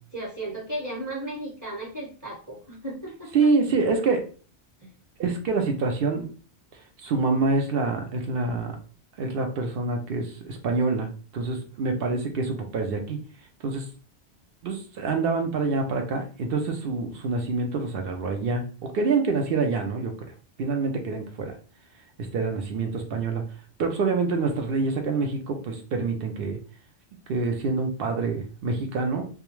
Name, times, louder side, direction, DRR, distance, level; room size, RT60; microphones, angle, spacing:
voice 1, 0.1-3.5 4.8-4.9, right 1 dB, 15° right, -4 dB, 1.0 m, -35 dB
voice 2, 3.3-4.3 5.2-6.3 7.0-8.7 9.2-13.2 13.6-13.9 14.6-20.1 20.6-21.5 22.2-23.4 23.8-26.6 27.3-29.2, right 3 dB, 60° right, 4 dB, 0.7 m, -26 dB
2.3 x 2.2 x 3.0 m, 0.39 s
omnidirectional pair, 1.2 m